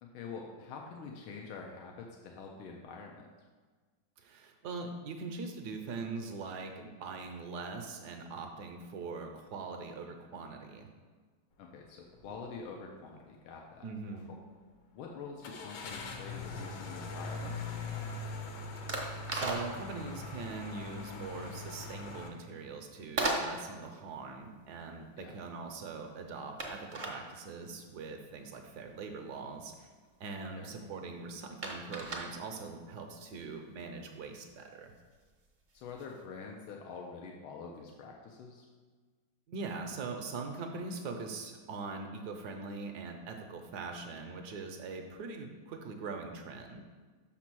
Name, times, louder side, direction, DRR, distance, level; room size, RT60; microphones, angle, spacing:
voice 1, 0.0-3.3 11.6-13.8 14.1-14.4 14.9-18.0 25.2-25.3 30.6-30.7 35.7-38.6, left 5 dB, 90° left, 0 dB, 1.5 m, -46 dB
voice 2, 4.2-10.9 13.8-14.3 19.0-29.9 30.2-34.9 39.5-46.8, right 4 dB, 65° right, 4 dB, 1.1 m, -42 dB
sound 1, 12.2-12.4 12.8-12.9 15.4-22.3, left 3 dB, 65° left, 1.3 m, -42 dB
sound 2, 17.2-36.2, right 2 dB, 40° right, 0.6 m, -41 dB
6.0 x 4.3 x 6.1 m, 1.4 s
omnidirectional pair, 2.2 m